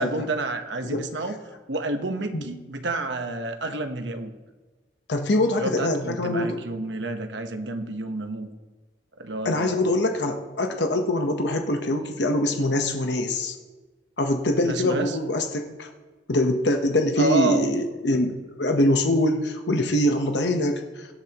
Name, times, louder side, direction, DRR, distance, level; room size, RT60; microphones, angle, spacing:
voice 1, 0.0-1.4 1.7-4.3 5.6-8.5 9.2-9.9 14.6-15.2 17.2-17.7, right 2 dB, 80° right, 6 dB, 1.1 m, -29 dB
voice 2, 5.1-6.6 9.4-13.5 14.2-15.9 16.3-21.1, left 1 dB, 70° left, 4 dB, 1.0 m, -24 dB
17.5 x 13.0 x 3.0 m, 1.3 s
head